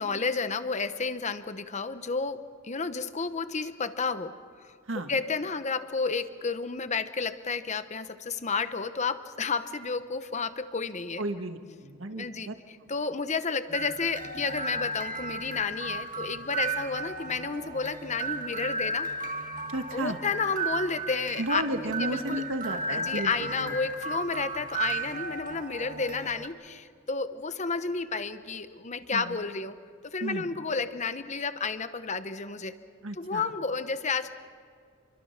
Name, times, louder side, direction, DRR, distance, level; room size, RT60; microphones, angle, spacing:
voice 1, 0.0-4.3 4.6-11.2 12.1-19.1 19.9-22.4 22.9-29.8 30.0-32.7 33.2-34.3, left 4 dB, 35° left, 11 dB, 1.0 m, -31 dB
voice 2, 11.2-12.6 19.7-20.2 21.4-23.3 23.6-23.7 29.1-29.4 30.2-30.5 33.0-33.5, right 1 dB, 75° right, 7 dB, 1.6 m, -33 dB
sound 1, 13.7-26.5, right 2 dB, 40° right, 1.7 m, -35 dB
28.5 x 23.0 x 5.9 m, 2.1 s
head